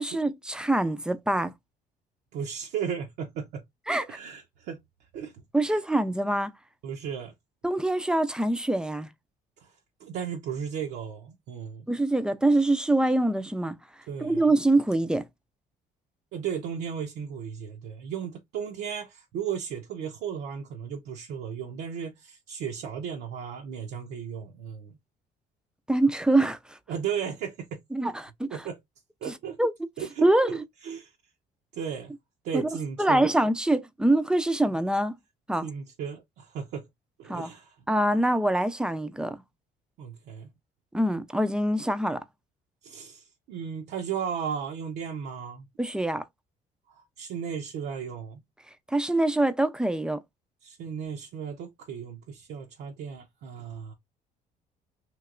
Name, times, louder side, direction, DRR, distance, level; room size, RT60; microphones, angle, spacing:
voice 1, 0.0-1.5 3.9-4.0 5.5-6.5 7.6-9.1 11.9-13.8 14.2-15.2 25.9-26.8 27.9-28.1 28.4-28.6 29.6-29.7 30.2-30.5 32.5-32.7 33.0-35.1 35.5-35.7 37.3-37.5 37.9-39.4 40.9-42.2 45.8-46.2 48.9-50.2, right 1 dB, 5° right, 0.3 m, -24 dB
voice 2, 2.3-3.6 4.1-4.8 5.1-5.8 6.8-7.3 9.6-11.9 14.1-14.5 16.3-25.0 26.9-27.8 28.5-28.8 29.2-29.6 30.0-31.1 31.7-32.1 32.4-33.3 35.6-36.9 37.2-37.8 40.0-40.5 42.8-45.7 46.9-48.4 50.6-53.9, right 7 dB, 80° right, 0.6 m, -35 dB
3.1 x 2.8 x 2.4 m
cardioid pair, 110°, 17 cm